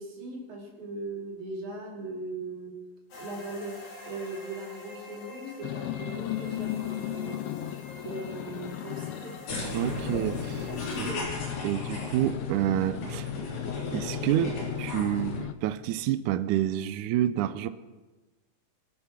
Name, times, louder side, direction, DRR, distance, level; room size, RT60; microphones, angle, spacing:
voice 1, 0.0-2.8 3.2-7.7 8.0-9.4 10.9-11.3 13.5-13.6, right 2 dB, 55° right, -1 dB, 4.5 m, -39 dB
sound 1, 3.1-11.1, left 2 dB, 40° left, 3.4 m, -45 dB
sound 2, 5.6-15.5, left 13 dB, 85° left, 2.6 m, -36 dB
sound 3, 9.5-15.4, left 3 dB, 70° left, 5.9 m, -36 dB
voice 2, 9.7-10.7 11.0-11.1 11.6-13.3 13.9-17.7, right 12 dB, 85° right, 12 dB, 1.7 m, -28 dB
23.5 x 8.6 x 6.0 m, 1.2 s
omnidirectional pair, 4.3 m